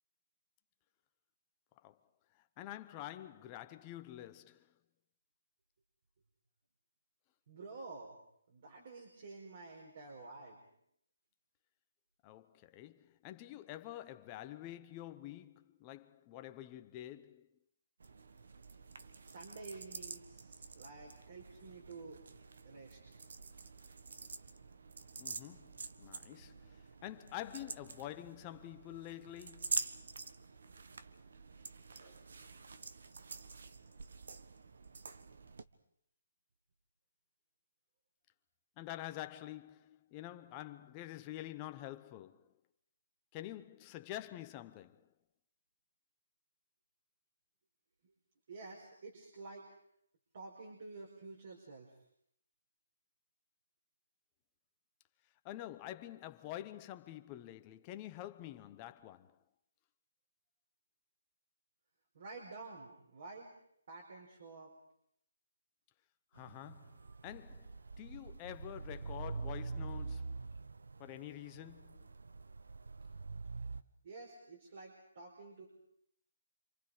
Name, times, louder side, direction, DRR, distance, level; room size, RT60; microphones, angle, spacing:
voice 1, 2.3-4.8 12.2-17.5 25.2-29.8 38.8-42.5 43.3-45.1 55.4-59.4 66.3-70.4 71.0-72.1, left 14 dB, 20° left, 0.9 m, -48 dB
voice 2, 7.5-8.2 8.5-10.6 19.2-22.2 22.6-23.0 31.9-32.3 48.5-49.6 50.3-51.9 62.1-63.5 63.9-64.7 74.0-75.7, right 3 dB, 45° right, 5.1 m, -50 dB
sound 1, 18.0-35.6, right 4 dB, 65° right, 1.5 m, -47 dB
sound 2, 66.4-73.8, right 4 dB, 85° right, 1.0 m, -45 dB
28.0 x 27.5 x 5.1 m
hypercardioid pair, 165°, 0 cm